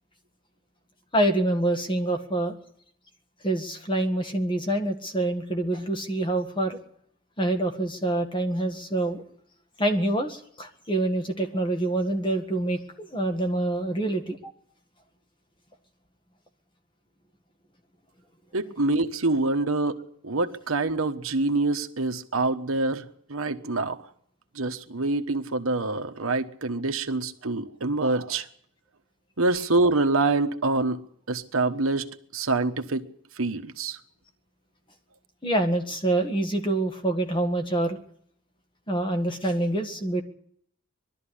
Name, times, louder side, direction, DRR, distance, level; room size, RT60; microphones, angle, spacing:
voice 1, 1.1-2.5 3.4-6.8 7.4-9.2 9.8-12.8 13.1-14.5 35.4-38.0 38.9-40.2, right 1 dB, 20° left, 1.8 m, -26 dB
voice 2, 18.5-23.0 23.3-24.0 24.5-28.5 29.4-31.0 31.3-33.0 33.4-34.0, right 2 dB, 75° right, 1.3 m, -26 dB
21.0 x 13.0 x 10.0 m
head